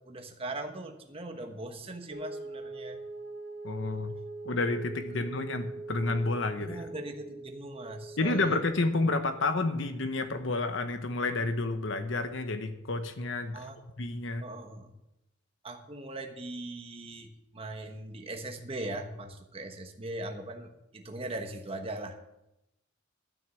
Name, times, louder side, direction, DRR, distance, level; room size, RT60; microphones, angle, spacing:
voice 1, 0.0-3.0 5.1-5.2 6.6-8.6 13.5-13.8 14.4-14.9 15.6-22.2, right 2 dB, 30° right, 5 dB, 1.2 m, -40 dB
sound 1, 2.1-8.7, right 2 dB, 45° right, 1.6 m, -42 dB
voice 2, 3.6-4.1 4.4-6.9 8.2-13.7 14.0-14.4, left 2 dB, 65° left, 8 dB, 0.9 m, -30 dB
12.5 x 6.5 x 8.3 m, 0.89 s
head